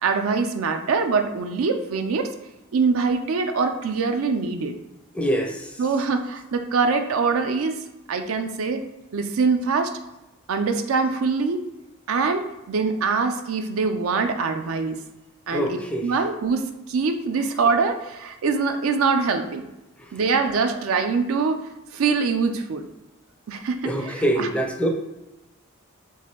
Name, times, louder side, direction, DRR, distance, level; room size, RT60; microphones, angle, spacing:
voice 1, 0.0-2.3 2.7-4.7 5.8-7.8 8.1-10.0 10.5-11.6 12.1-15.0 15.5-19.7 20.1-21.6 21.9-22.9 23.5-24.5, right 4 dB, 70° right, 7 dB, 0.4 m, -24 dB
voice 2, 5.1-5.7 15.5-16.1 23.8-24.9, equal, 5° left, 2 dB, 0.4 m, -24 dB
4.1 x 2.7 x 3.7 m, 0.99 s
head